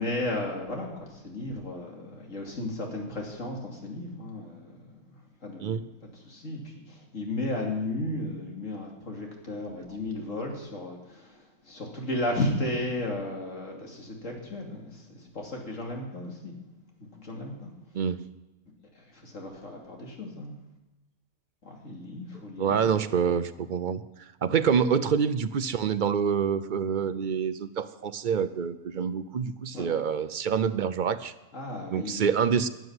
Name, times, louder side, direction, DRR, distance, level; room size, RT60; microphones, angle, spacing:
voice 1, 0.0-16.6 17.0-17.7 18.9-20.5 21.6-22.8 24.6-24.7 29.7-30.0 31.5-32.2, left 1 dB, 85° left, 0 dB, 3.0 m, -34 dB
voice 2, 22.6-31.3 31.9-32.7, right 7 dB, 50° right, 13 dB, 0.6 m, -27 dB
13.0 x 7.8 x 9.6 m, 1.0 s
omnidirectional pair, 1.3 m